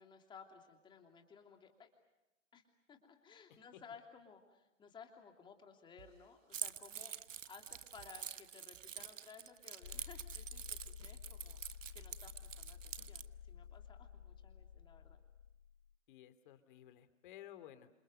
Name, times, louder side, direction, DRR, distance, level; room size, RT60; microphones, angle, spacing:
voice 1, 0.0-1.9 2.5-2.6 2.9-7.1 7.5-15.2, left 6 dB, 10° left, 4 dB, 3.0 m, -58 dB
voice 2, 3.5-3.8 16.1-17.9, left 12 dB, 40° left, 11 dB, 2.8 m, -56 dB
sound 1, 6.0-9.2 9.5-9.6 10.0-10.5 11.0-11.5 12.0-13.8, right 9 dB, 50° right, 3.7 m, -66 dB
Keys jangling, 6.5-13.3, right 9 dB, 75° right, 1.3 m, -47 dB
sound 2, 9.8-16.0, left 8 dB, 90° left, 0.9 m, -52 dB
28.5 x 28.0 x 6.5 m, 1.0 s
hypercardioid pair, 145°, 38 cm